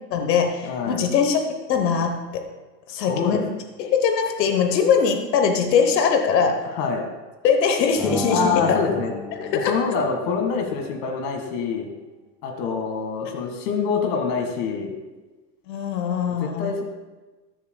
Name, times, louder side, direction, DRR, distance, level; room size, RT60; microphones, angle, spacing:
voice 1, 0.1-1.4 1.7-2.4 2.9-3.4 3.8-6.6 7.4-8.8 9.4-9.7 15.7-16.7, left 6 dB, 80° left, 4 dB, 1.2 m, -21 dB
voice 2, 0.6-1.0 3.1-3.4 6.8-7.1 8.3-9.1 9.5-11.9 12.4-14.9 16.3-16.8, left 5 dB, 60° left, 3 dB, 2.0 m, -25 dB
sound 1, 7.9-10.6, left 2 dB, ahead, 0.3 m, -33 dB
13.5 x 7.3 x 2.3 m, 1.2 s
hypercardioid pair, 100°, 49 cm